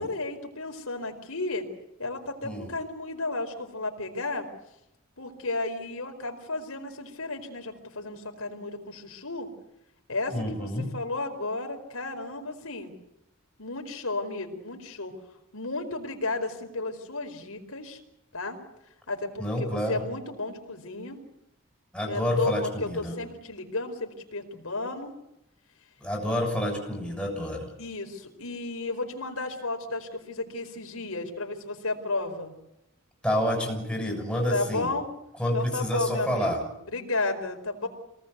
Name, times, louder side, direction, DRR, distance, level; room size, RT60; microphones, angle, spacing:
voice 1, 0.0-1.7 2.0-4.5 5.2-9.5 10.1-12.9 13.6-15.1 15.5-18.0 18.3-18.6 19.1-21.2 22.0-22.5 22.8-25.1 27.8-32.5 34.5-35.1 35.5-37.9, left 2 dB, 75° left, 4 dB, 4.7 m, -33 dB
voice 2, 2.4-2.8 10.3-10.9 19.4-20.0 21.9-23.2 26.0-27.7 33.2-34.9 35.4-36.6, equal, 5° left, 1 dB, 7.0 m, -28 dB
27.0 x 19.0 x 8.2 m, 0.86 s
head